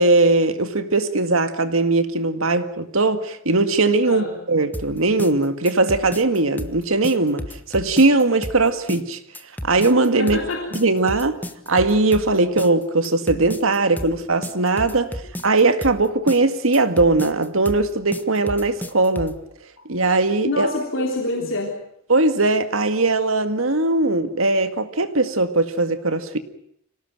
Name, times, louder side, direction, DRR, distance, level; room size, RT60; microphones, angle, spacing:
voice 1, 0.0-9.2 9.6-10.4 10.8-11.4 11.7-15.1 15.4-19.4 19.9-20.7 22.1-26.4, right 2 dB, 75° right, 9 dB, 2.0 m, -19 dB
voice 2, 4.0-4.4 10.2-10.7 13.0-13.4 15.0-15.2 16.2-16.3 19.8-19.9 20.4-21.8, left 2 dB, 65° left, 1 dB, 3.6 m, -27 dB
sound 1, 4.7-19.4, equal, 10° left, 1.3 m, -33 dB
26.0 x 18.0 x 9.1 m, 0.72 s
head